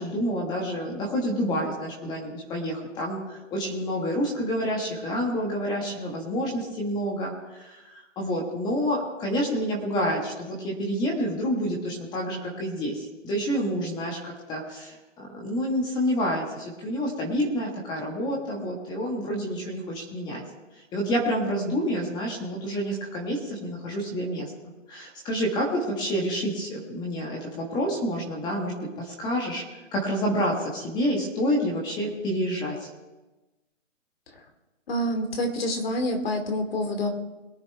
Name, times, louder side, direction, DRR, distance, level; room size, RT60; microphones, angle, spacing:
voice 1, 0.0-20.4 20.7-24.5 24.9-29.6 29.9-32.9, equal, 10° left, -1 dB, 1.6 m, -28 dB
voice 2, 34.9-37.1, left 1 dB, 50° left, 4 dB, 2.6 m, -27 dB
22.0 x 9.6 x 3.4 m, 1.1 s
hypercardioid pair, 155°, 38 cm